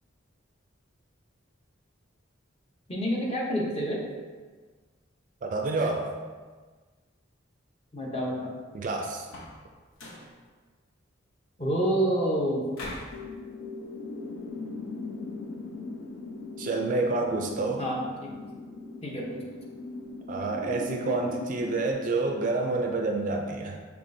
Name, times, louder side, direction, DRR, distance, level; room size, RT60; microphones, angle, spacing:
voice 1, 2.9-4.0 7.9-8.5 11.6-12.6 17.8-18.3 19.0-19.4, right 1 dB, 30° left, -2 dB, 0.8 m, -28 dB
voice 2, 5.4-6.2 8.7-9.3 16.6-17.8 20.3-23.8, right 3 dB, 40° right, 2 dB, 0.3 m, -28 dB
sound 1, 9.2-9.6 9.9-10.3 12.7-13.2, left 1 dB, 85° left, 0.8 m, -41 dB
sound 2, 13.1-21.9, left 3 dB, 70° left, 0.5 m, -39 dB
5.9 x 3.3 x 2.6 m, 1.4 s
head